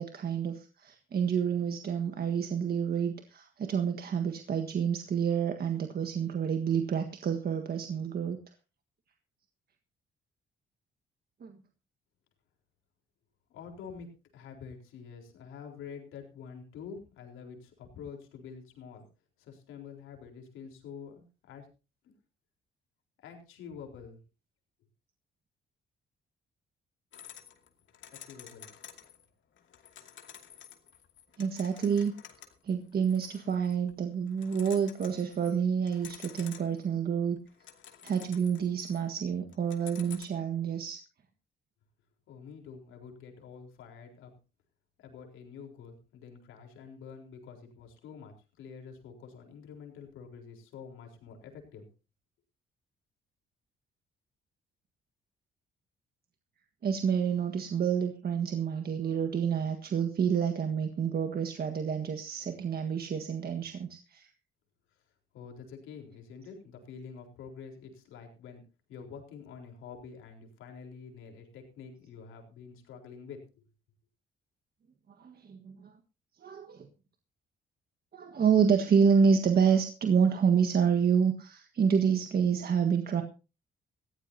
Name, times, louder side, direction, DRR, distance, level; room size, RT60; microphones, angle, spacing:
voice 1, 0.0-8.4 11.4-11.6 31.4-32.1 32.6-37.4 38.0-41.0 56.8-64.3 75.2-75.9 76.4-76.9 78.1-83.2, right 7 dB, 50° right, 5 dB, 1.6 m, -28 dB
voice 2, 13.5-19.1 19.4-21.7 22.0-22.1 23.2-24.2 28.1-28.7 42.3-44.3 45.0-51.9 64.9-65.0 65.3-68.6 68.9-73.4, left 6 dB, 90° left, 2 dB, 4.1 m, -47 dB
sound 1, 27.1-29.2 29.6-33.9 34.3-35.5 35.9-36.9 37.4-39.2 39.5-40.3, left 9 dB, 70° left, 2.6 m, -50 dB
19.5 x 15.0 x 2.8 m, 0.32 s
cardioid pair, 90°, 20 cm